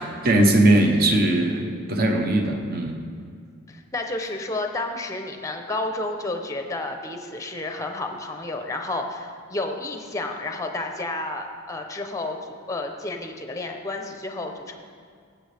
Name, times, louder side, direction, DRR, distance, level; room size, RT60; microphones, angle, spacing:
voice 1, 0.2-3.0, right 1 dB, 45° right, 3 dB, 0.9 m, -19 dB
voice 2, 3.7-12.4 12.7-14.8, left 2 dB, 15° left, 4 dB, 0.7 m, -31 dB
15.5 x 7.6 x 3.4 m, 2.2 s
head